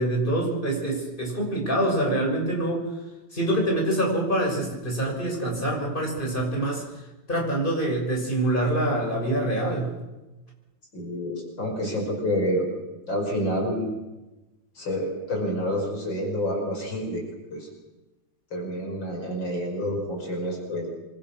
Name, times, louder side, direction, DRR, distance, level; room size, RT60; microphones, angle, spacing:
voice 1, 0.0-2.9 3.3-6.8 7.3-9.9, right 1 dB, 25° left, 0 dB, 6.9 m, -25 dB
voice 2, 10.9-12.7 13.1-13.9 14.8-17.2 17.5-17.7 18.5-20.9, equal, 65° left, 1 dB, 6.2 m, -28 dB
28.0 x 23.5 x 6.4 m, 1.1 s
omnidirectional pair, 2.2 m